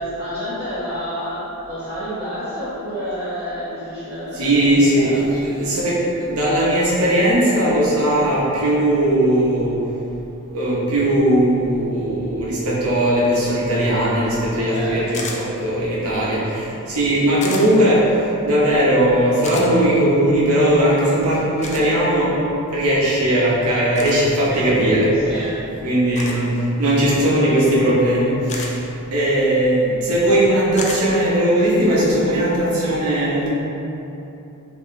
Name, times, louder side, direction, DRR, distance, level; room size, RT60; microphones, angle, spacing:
voice 1, 0.0-5.8 14.4-15.0 24.4-24.7 25.2-25.6, equal, 5° left, -20 dB, 1.4 m, -29 dB
voice 2, 4.4-5.1 5.4-9.7 10.5-18.0 18.4-22.3 22.7-25.1 25.8-28.7 29.1-33.5, right 1 dB, 75° right, -7 dB, 1.0 m, -18 dB
sound 1, 15.1-15.4 17.4-17.6 19.4-19.7 21.6-21.8 23.9-24.2 26.2-26.4 28.5-28.7 30.8-31.0, left 3 dB, 30° left, 0.4 m, -30 dB
4.2 x 2.9 x 3.2 m, 3.0 s
head